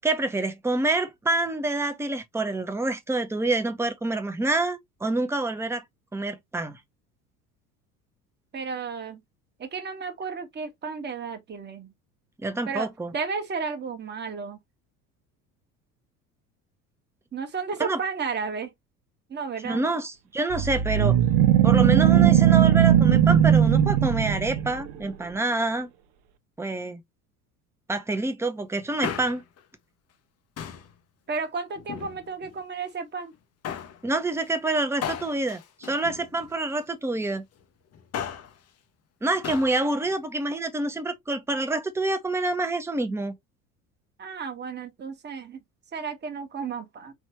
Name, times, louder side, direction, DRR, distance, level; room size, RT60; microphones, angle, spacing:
voice 1, 0.0-5.8 6.1-6.8 12.4-13.1 17.8-18.0 19.6-21.2 21.6-25.9 26.6-27.0 27.9-29.4 34.0-37.4 39.2-43.3, right 2 dB, 5° right, 0.9 m, -27 dB
voice 2, 8.5-9.2 9.6-11.9 12.7-14.6 17.3-18.7 19.3-19.8 31.3-33.3 44.2-45.6 45.9-47.1, right 5 dB, 25° right, 1.2 m, -33 dB
sound 1, 20.5-24.9, right 10 dB, 55° right, 0.8 m, -18 dB
Male speech man speaking, 28.8-29.6 30.6-30.9 31.7-32.5 33.6-34.0 35.0-36.7 37.9-38.6 39.4-39.8 40.0-40.1, left 8 dB, 35° left, 0.8 m, -35 dB
4.7 x 3.2 x 2.8 m
figure-of-eight pair, 65°, 45 cm